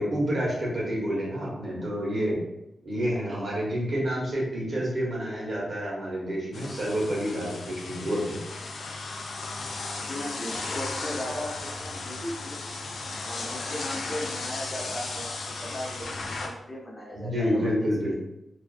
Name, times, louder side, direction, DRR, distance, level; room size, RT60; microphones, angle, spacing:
voice 1, 0.0-2.4 2.8-8.4 17.1-18.1, equal, 55° right, -5 dB, 1.0 m, -28 dB
voice 2, 3.0-3.5 10.0-12.6 13.2-18.1, left 1 dB, 25° left, -3 dB, 0.6 m, -37 dB
sound 1, 6.5-16.5, left 3 dB, 75° left, 0.3 m, -35 dB
2.4 x 2.3 x 2.3 m, 0.86 s
wide cardioid pair, 105°, 0 cm